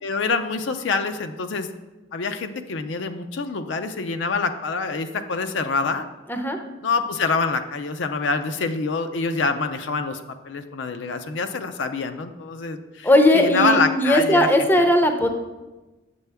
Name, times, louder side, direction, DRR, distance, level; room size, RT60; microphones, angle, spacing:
voice 1, 0.0-1.7 2.1-6.1 6.8-10.2 10.4-13.1 13.3-14.9, left 4 dB, 65° left, 7 dB, 0.5 m, -26 dB
voice 2, 13.0-15.3, left 1 dB, 10° left, 5 dB, 0.6 m, -18 dB
8.1 x 6.8 x 3.4 m, 1.1 s
head